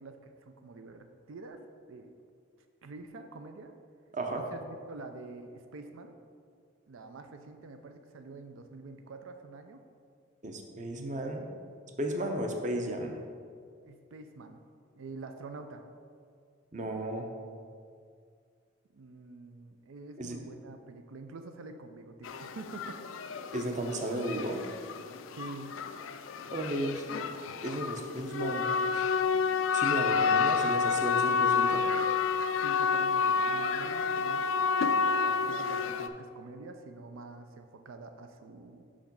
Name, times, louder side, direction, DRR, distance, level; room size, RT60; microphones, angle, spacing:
voice 1, 0.0-2.1 2.8-3.7 4.3-6.1 6.9-9.8 13.8-14.6 15.0-15.9 18.9-23.2 25.3-25.8 27.8-28.2 32.5-34.5 34.9-38.9, right 3 dB, 85° right, 6 dB, 0.5 m, -46 dB
voice 2, 4.1-4.5 10.4-11.5 12.0-13.2 16.7-17.3 20.2-20.4 23.5-24.6 26.5-27.1 27.6-28.7 29.7-31.9, right 1 dB, 40° right, 3 dB, 0.6 m, -34 dB
sound 1, 22.2-36.1, left 5 dB, 80° left, 0.4 m, -29 dB
6.0 x 5.0 x 5.2 m, 2.2 s
head